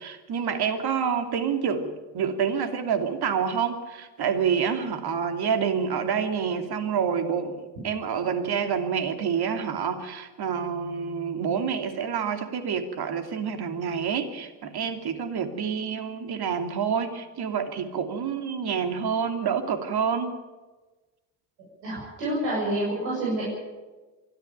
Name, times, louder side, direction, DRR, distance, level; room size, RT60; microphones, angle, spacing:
voice 1, 0.0-20.4, right 7 dB, 50° right, 6 dB, 2.9 m, -28 dB
voice 2, 21.8-23.4, right 1 dB, 85° right, -6 dB, 7.9 m, -28 dB
23.5 x 14.0 x 8.9 m, 1.2 s
hypercardioid pair, 70°, 50 cm